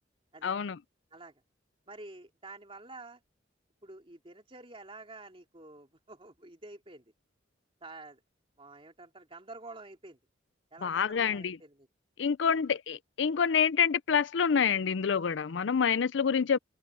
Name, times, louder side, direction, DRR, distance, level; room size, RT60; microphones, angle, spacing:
voice 1, 0.4-0.8 10.8-11.6 12.2-16.6, left 7 dB, 70° left, 0.5 m, -27 dB
voice 2, 1.1-1.4 1.9-3.2 3.8-7.1 7.8-8.2 8.6-10.2 10.7-11.9 12.5-12.6, right 2 dB, 30° right, 3.2 m, -49 dB
head